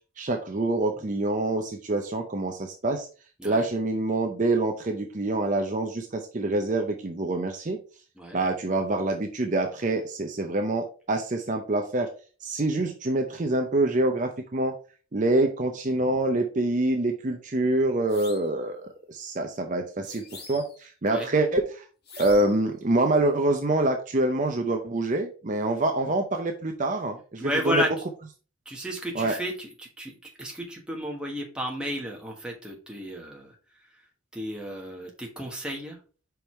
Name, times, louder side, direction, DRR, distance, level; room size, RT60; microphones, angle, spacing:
voice 1, 0.2-3.1 3.4-7.8 8.3-12.1 12.4-14.8 15.1-21.9 22.2-27.8 29.1-29.3, right 2 dB, 35° right, 4 dB, 0.6 m, -26 dB
sound 1, 18.1-18.6 20.0-20.9 22.1-22.7, left 4 dB, 50° left, 1.7 m, -45 dB
voice 2, 27.4-27.9 28.6-33.6 34.3-36.0, equal, 5° right, -1 dB, 1.3 m, -33 dB
5.2 x 4.6 x 4.4 m, 0.37 s
head